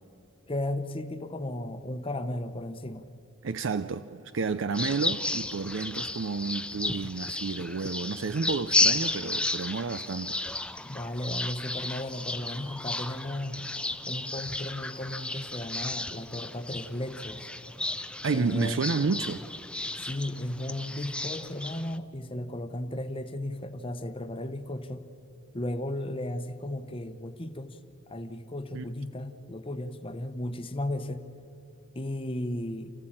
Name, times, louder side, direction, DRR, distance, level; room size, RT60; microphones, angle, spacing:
voice 1, 0.5-3.1 10.8-13.7 14.1-17.5 18.3-18.8 20.0-25.1 25.5-27.8 28.1-31.2 31.9-32.9, left 1 dB, 25° left, 1.0 m, -35 dB
voice 2, 3.4-10.4 18.2-19.4 28.7-28.8, right 4 dB, 65° right, 0.5 m, -30 dB
sound 1, 4.7-22.0, left 2 dB, 5° left, 0.5 m, -33 dB
28.5 x 15.0 x 8.8 m
head